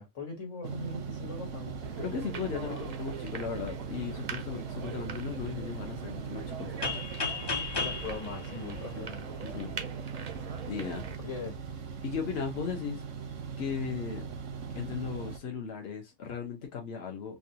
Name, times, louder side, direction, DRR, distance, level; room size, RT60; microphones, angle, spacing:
voice 1, 0.0-1.8 2.5-2.9 7.7-9.3 11.2-11.6, left 4 dB, 85° left, 1.7 m, -40 dB
sound 1, 0.6-15.4, right 6 dB, 90° right, 1.1 m, -40 dB
sound 2, 1.8-11.2, right 6 dB, 50° right, 0.4 m, -43 dB
voice 2, 2.0-6.8 8.8-9.1 9.4-9.8 10.6-11.0 12.0-13.0 13.6-14.2 14.8-17.4, left 6 dB, 60° left, 1.0 m, -37 dB
sound 3, 6.8-9.6, left 4 dB, 30° left, 0.5 m, -35 dB
3.8 x 2.3 x 2.7 m
omnidirectional pair, 1.2 m